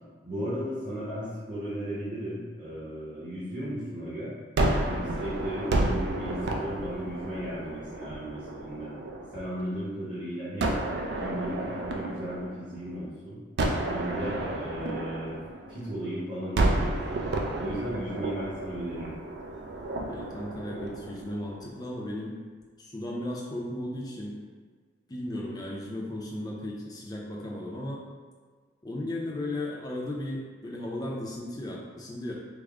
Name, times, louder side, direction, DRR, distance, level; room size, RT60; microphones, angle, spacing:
voice 1, 0.2-4.4 4.7-8.9 9.3-10.8 11.2-13.4 13.9-15.4 15.7-17.2 17.6-19.1, equal, 30° right, -11 dB, 0.9 m, -35 dB
Gunshot gunfire, 4.6-9.7 10.6-13.0 13.6-16.1 16.6-21.8, right 2 dB, 65° right, 0.4 m, -31 dB
voice 2, 20.1-22.4 22.8-24.4 25.1-28.0 28.8-32.3, left 1 dB, 20° left, -3 dB, 0.5 m, -35 dB
3.5 x 2.1 x 3.5 m, 1.5 s
head